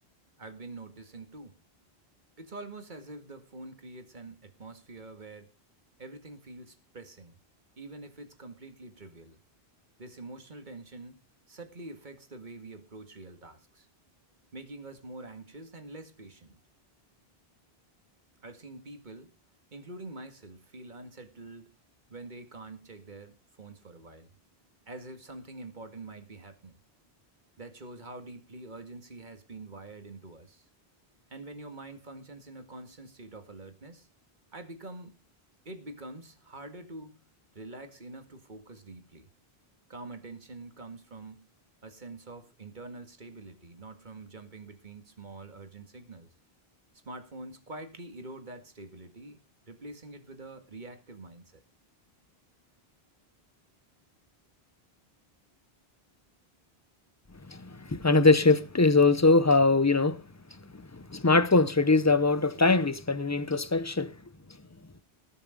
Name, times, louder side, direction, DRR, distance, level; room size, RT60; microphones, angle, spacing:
voice 1, 0.4-1.5 2.4-5.5 6.0-7.4 7.8-9.4 10.0-11.2 11.5-13.9 14.5-16.6 18.4-19.3 19.7-21.7 22.1-24.3 24.9-26.8 27.6-30.7 31.3-34.1 34.5-35.1 35.7-37.3 37.5-39.3 39.9-41.5 41.8-46.3 47.1-49.4 49.7-51.6, right 2 dB, 50° right, 2.1 m, -45 dB
voice 2, 57.5-60.2 60.7-64.2, left 3 dB, 20° left, 0.6 m, -22 dB
19.5 x 7.0 x 5.1 m
omnidirectional pair, 1.0 m